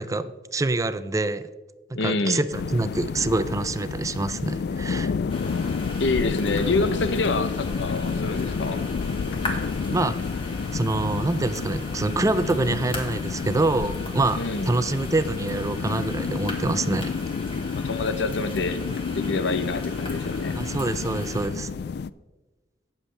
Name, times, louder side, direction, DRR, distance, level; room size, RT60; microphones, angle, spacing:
voice 1, 0.0-1.5 1.9-5.1 9.5-9.6 9.9-10.2 10.7-17.1 20.6-21.7, right 2 dB, 20° right, 13 dB, 0.4 m, -26 dB
voice 2, 1.9-2.4 6.0-8.8 14.4-14.7 17.7-18.8 19.1-20.6, left 3 dB, 85° left, 12 dB, 0.7 m, -27 dB
sound 1, 2.5-22.1, left 5 dB, 65° left, 0.3 m, -30 dB
sound 2, 5.3-21.5, left 1 dB, 30° left, 2.0 m, -37 dB
18.0 x 7.2 x 3.4 m, 1.2 s
head